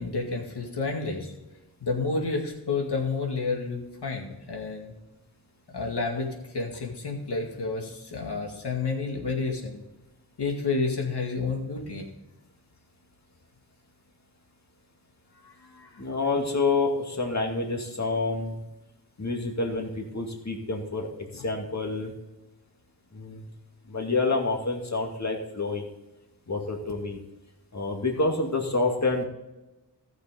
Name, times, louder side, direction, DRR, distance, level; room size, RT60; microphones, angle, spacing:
voice 1, 0.0-1.3 1.8-4.9 5.7-9.8 10.4-12.0 15.4-16.0, left 4 dB, 85° left, 1 dB, 2.2 m, -30 dB
voice 2, 16.0-18.6 19.2-21.1 21.3-22.1 23.1-23.4 23.9-25.9 26.5-27.2 27.7-29.2, left 3 dB, 45° left, 1 dB, 2.3 m, -28 dB
14.5 x 6.6 x 3.9 m, 1.0 s
wide cardioid pair, 55°, 40 cm